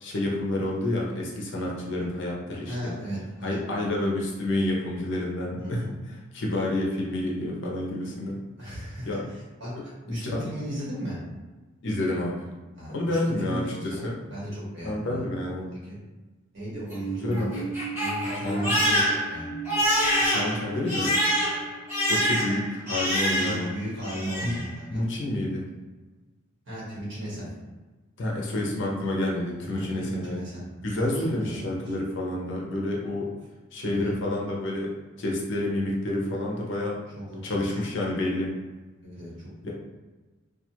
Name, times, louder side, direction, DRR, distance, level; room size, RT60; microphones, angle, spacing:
voice 1, 0.0-2.9 3.4-5.8 6.3-8.4 9.1-9.2 9.8-10.5 11.8-12.5 12.9-14.2 14.8-15.7 17.2-17.6 18.4-18.8 20.2-21.2 22.1-23.7 24.4-24.5 24.9-25.6 28.2-30.4 30.8-33.3 33.7-34.9 35.2-37.0 37.4-38.6 39.6-39.7, left 1 dB, 60° left, -2 dB, 0.6 m, -29 dB
voice 2, 2.7-4.0 5.6-5.9 8.6-11.2 12.7-14.0 14.3-16.0 16.5-17.7 18.0-19.6 23.3-25.0 26.7-27.5 29.6-30.6 31.2-31.9 33.9-34.1 37.3-37.8 39.0-39.5, equal, 60° right, -7 dB, 1.3 m, -36 dB
Crying sobbing, 16.7-23.7 24.0-24.7, equal, 10° right, 1.2 m, -26 dB
2.3 x 2.3 x 2.9 m, 1.3 s
head